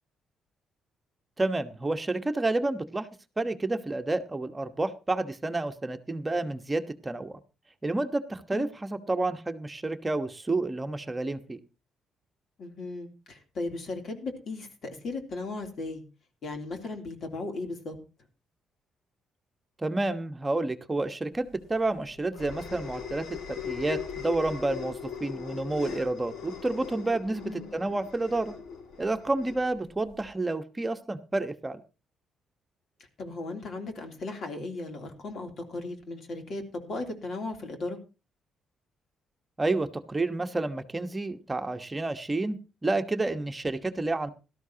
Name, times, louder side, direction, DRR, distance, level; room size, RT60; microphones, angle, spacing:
voice 1, 1.4-3.1 3.4-7.4 7.8-11.6 19.8-28.6 29.0-31.8 39.6-42.6 42.8-44.3, right 2 dB, 20° right, 7 dB, 1.2 m, -30 dB
voice 2, 12.6-16.0 16.4-18.0 27.4-27.7 33.2-38.0, left 2 dB, 55° left, 4 dB, 3.0 m, -36 dB
sound 1, 21.5-30.3, left 7 dB, 80° left, 2.2 m, -40 dB
17.5 x 13.0 x 2.9 m, 0.31 s
cardioid pair, 90°, 0 cm